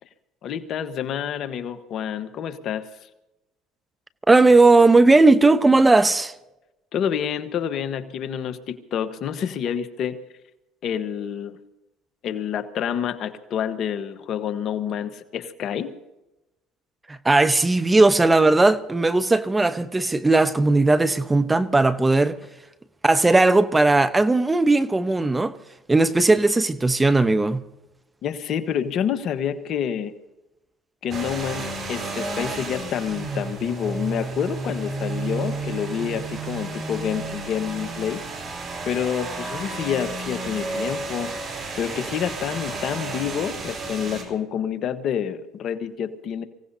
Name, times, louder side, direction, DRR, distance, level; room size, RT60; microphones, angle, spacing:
voice 1, 0.4-3.1 6.9-10.2 10.8-11.6 12.2-15.9 28.2-30.1 31.0-38.2 38.8-41.3 41.8-46.4, left 8 dB, 55° left, 1.3 m, -28 dB
voice 2, 4.3-6.3 17.1-22.4 23.0-25.5 25.9-27.6, right 2 dB, 15° right, 0.9 m, -17 dB
sound 1, 31.1-44.2, right 3 dB, 45° right, 4.1 m, -32 dB
25.0 x 17.0 x 2.8 m
supercardioid pair, 80°, 0 cm